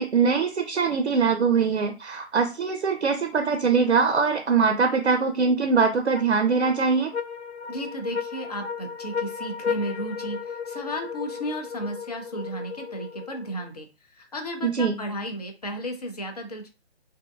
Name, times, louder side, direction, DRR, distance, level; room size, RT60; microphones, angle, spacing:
voice 1, 0.0-7.1 14.6-14.9, right 5 dB, 80° right, 6 dB, 0.5 m, -22 dB
sound 1, 6.1-13.7, left 6 dB, 90° left, 0.5 m, -34 dB
voice 2, 7.7-16.7, equal, 40° left, 4 dB, 0.5 m, -34 dB
2.6 x 2.1 x 2.3 m, 0.31 s
figure-of-eight pair, 145°, 33 cm